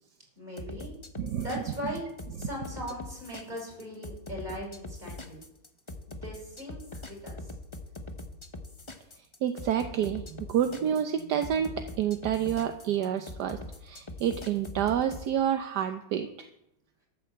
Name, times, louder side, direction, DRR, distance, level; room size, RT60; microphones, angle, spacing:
voice 1, 0.4-0.9 1.4-2.0 2.4-5.4 6.1-6.8 7.0-7.5, left 1 dB, 20° right, -3 dB, 6.2 m, -39 dB
sound 1, 0.6-15.3, left 2 dB, 30° left, 0.5 m, -42 dB
voice 2, 9.4-16.5, right 9 dB, 65° right, 7 dB, 1.2 m, -29 dB
13.0 x 10.5 x 7.6 m, 0.81 s
omnidirectional pair, 2.3 m